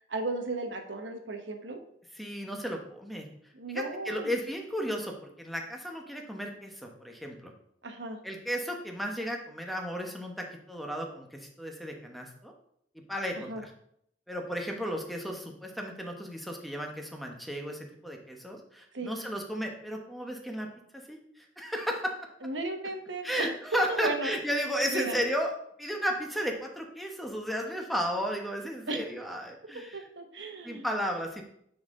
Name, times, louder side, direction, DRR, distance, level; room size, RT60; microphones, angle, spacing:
voice 1, 0.1-1.8 3.5-4.3 7.8-8.2 13.5-13.6 18.9-19.1 22.4-23.5 23.9-24.4 24.9-25.2 28.9-29.0 29.9-30.8, right 2 dB, 90° right, 5 dB, 1.1 m, -35 dB
voice 2, 2.1-3.3 3.7-7.5 8.2-12.5 12.9-13.7 14.3-20.7 20.9-22.1 23.2-25.5 25.8-30.0 30.6-31.4, equal, ahead, 1 dB, 0.9 m, -34 dB
9.4 x 4.3 x 3.7 m, 0.70 s
head